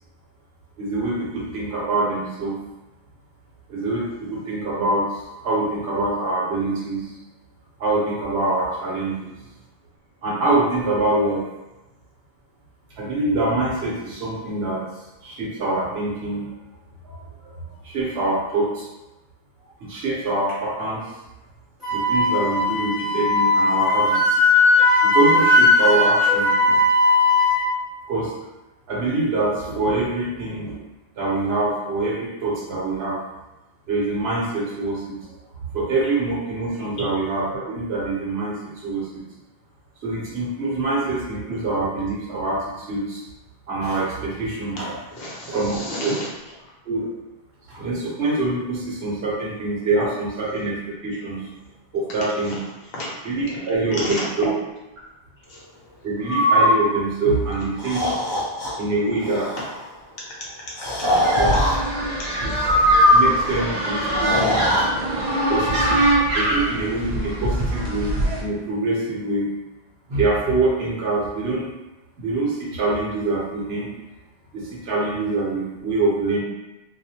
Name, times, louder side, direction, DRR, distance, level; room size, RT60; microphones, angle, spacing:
voice 1, 0.8-2.6 3.7-7.1 7.8-9.3 10.2-11.4 13.0-14.8 15.2-16.5 17.0-17.5 17.8-18.9 19.8-21.0 21.9-24.4 25.0-26.8 28.1-28.3 28.9-30.8 31.2-33.2 33.9-35.2 35.7-39.2 40.0-43.2 43.7-44.9 45.5-46.1 46.8-47.1 47.7-50.8 51.0-51.5 51.9-52.6 53.2-54.5 56.0-58.0 58.8-59.5 61.3-61.5 62.4-62.5 63.1-64.7 65.5-66.1 66.3-69.5 70.1-71.6 72.2-73.9 74.5-76.4, right 2 dB, 75° right, -5 dB, 1.0 m, -24 dB
Wind instrument woodwind instrument, 21.8-27.6, left 2 dB, ahead, 0.9 m, -17 dB
voice 2, 45.1-46.3 52.4-52.6 52.9-53.1 53.5-53.7 54.0-54.3 55.5-55.6 58.6-58.7 60.2-61.7 62.0-62.4, left 1 dB, 70° left, -5 dB, 0.9 m, -34 dB
Breathing, 56.2-56.8 57.8-58.7 59.2-59.6 60.8-61.8 62.6-63.5 64.2-64.8, equal, 30° left, 0.6 m, -19 dB
sound 1, 61.0-68.4, right 1 dB, 50° right, 0.6 m, -24 dB
2.4 x 2.0 x 2.7 m, 1.0 s
omnidirectional pair, 1.1 m